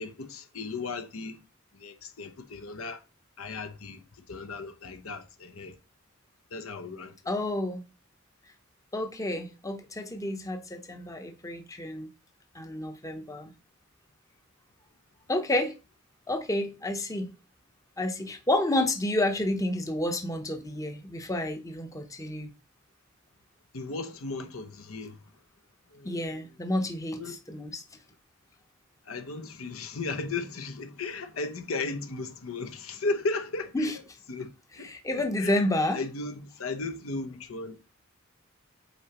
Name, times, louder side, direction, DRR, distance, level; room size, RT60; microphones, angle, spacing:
voice 1, 0.0-1.4 1.7-3.0 3.4-4.0 4.3-5.8 6.5-7.1 23.7-25.2 25.9-26.2 27.2-27.4 29.1-33.9 34.3-34.5 34.8-35.6 35.9-37.8, left 3 dB, 85° left, 0.8 m, -35 dB
voice 2, 7.3-7.8 8.9-12.1 12.5-13.5 15.3-15.7 16.3-17.3 18.0-22.5 26.0-27.8 33.7-34.0 34.8-36.0, left 1 dB, 15° left, 0.7 m, -30 dB
8.2 x 4.3 x 2.9 m
head